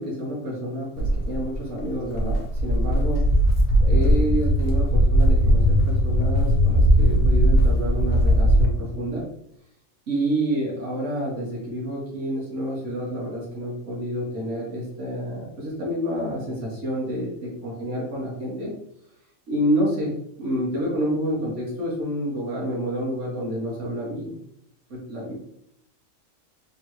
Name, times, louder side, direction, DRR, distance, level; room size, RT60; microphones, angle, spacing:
voice 1, 0.0-3.2 3.8-9.2 10.1-18.7 19.5-20.1 20.4-24.4 24.9-25.3, equal, 65° right, -4 dB, 1.5 m, -28 dB
Walk footsteps, 1.0-8.7, equal, 65° left, 1.1 m, -19 dB
3.6 x 3.4 x 3.0 m, 0.77 s
omnidirectional pair, 1.4 m